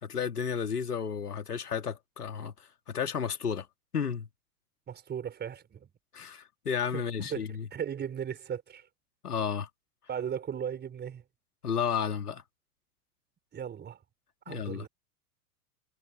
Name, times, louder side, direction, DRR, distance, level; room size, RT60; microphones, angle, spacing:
voice 1, 0.0-3.7 3.9-4.3 6.1-7.7 9.2-9.7 11.6-12.4 14.5-14.9, left 7 dB, 80° left, 2.5 m, -32 dB
voice 2, 4.9-5.9 6.9-7.0 7.3-8.9 10.1-11.2 13.5-14.0 14.4-14.9, right 8 dB, 20° right, 5.0 m, -37 dB
figure-of-eight pair, 95°, 46 cm